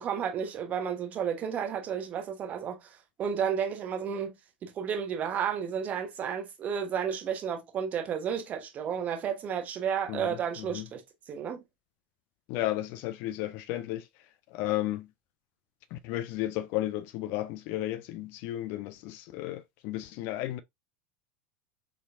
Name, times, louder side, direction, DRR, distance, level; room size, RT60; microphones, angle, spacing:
voice 1, 0.0-2.9 3.2-4.3 4.6-11.0 11.3-11.6, right 7 dB, 30° right, 1.0 m, -32 dB
voice 2, 10.1-10.9 12.5-14.1 14.5-15.1 15.9-20.6, left 15 dB, 45° left, 0.3 m, -33 dB
4.2 x 2.9 x 2.3 m
figure-of-eight pair, 80°, 5 cm